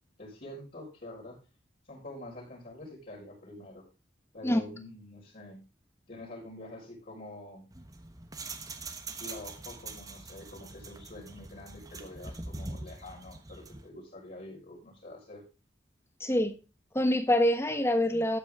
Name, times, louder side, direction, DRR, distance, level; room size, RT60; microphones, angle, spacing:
voice 1, 0.2-1.4 1.9-3.8 4.3-5.6 6.1-7.6 9.2-15.4, left 1 dB, 50° left, -8 dB, 5.0 m, -46 dB
sound 1, 7.7-13.9, right 3 dB, 20° right, 1.1 m, -43 dB
voice 2, 16.2-16.5 16.9-18.4, left 1 dB, 15° left, 8 dB, 1.3 m, -25 dB
12.5 x 8.5 x 3.6 m, 0.29 s
head